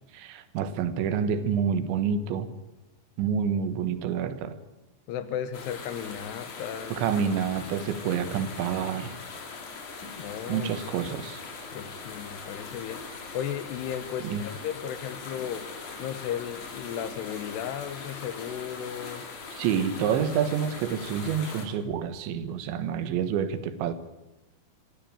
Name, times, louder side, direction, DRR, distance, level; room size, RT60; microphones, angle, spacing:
voice 1, 0.1-2.5 3.2-4.6 7.0-9.2 10.5-11.4 14.2-14.4 19.5-23.9, right 7 dB, 90° right, 11 dB, 3.7 m, -28 dB
voice 2, 5.1-7.0 10.2-10.7 11.7-15.7 16.0-19.3, left 9 dB, 75° left, 12 dB, 3.1 m, -35 dB
sound 1, 5.5-21.7, left 4 dB, 45° left, 3.9 m, -41 dB
23.0 x 15.5 x 8.8 m, 0.98 s
omnidirectional pair, 5.1 m